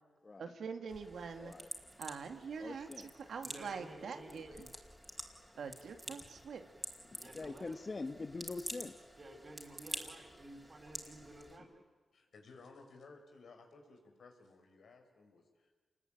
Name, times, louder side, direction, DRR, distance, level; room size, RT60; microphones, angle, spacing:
voice 1, 0.4-1.5 2.0-4.7 5.6-6.7, right 5 dB, 80° right, 6 dB, 2.1 m, -44 dB
sound 1, 0.9-11.6, equal, 5° right, 4.6 m, -49 dB
voice 2, 1.4-1.7 2.6-3.1 7.1-8.9, left 3 dB, 40° left, 8 dB, 1.2 m, -44 dB
voice 3, 3.4-4.6 6.1-6.2 7.2-7.8 9.2-11.9, right 1 dB, 40° right, 5 dB, 5.2 m, -53 dB
voice 4, 12.1-15.7, left 3 dB, 75° left, 3 dB, 5.3 m, -58 dB
28.0 x 21.0 x 9.2 m, 1.4 s
cardioid pair, 75°, 0 cm